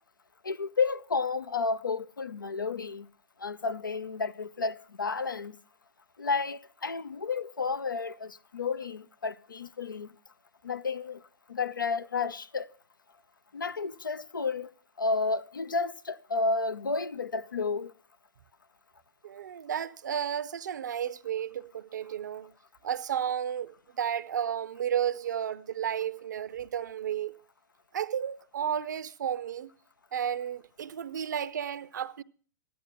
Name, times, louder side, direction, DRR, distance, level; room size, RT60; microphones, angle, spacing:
voice 1, 0.4-3.1 3.4-5.6 6.2-10.1 10.6-11.2 11.5-12.7 13.5-14.7 15.0-17.9, left 4 dB, 80° left, 0.6 m, -31 dB
voice 2, 19.2-22.5 22.8-27.4 27.9-29.7 30.1-32.2, right 9 dB, 65° right, 0.6 m, -32 dB
14.5 x 10.5 x 5.8 m
figure-of-eight pair, 105°, 11 cm